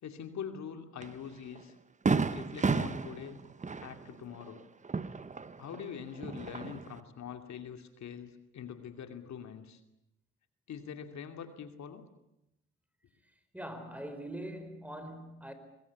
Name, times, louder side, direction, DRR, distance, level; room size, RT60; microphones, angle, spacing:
voice 1, 0.0-1.7 2.3-3.4 3.8-4.6 5.6-9.8 10.7-12.0, left 8 dB, 65° left, 2.6 m, -44 dB
Fireworks, 1.0-1.1 1.6-1.7 2.1-5.8 6.1-7.0, right 4 dB, 25° right, 1.1 m, -32 dB
voice 2, 13.5-15.5, right 1 dB, 5° right, 4.6 m, -42 dB
23.0 x 22.0 x 8.4 m
cardioid pair, 90°, 30 cm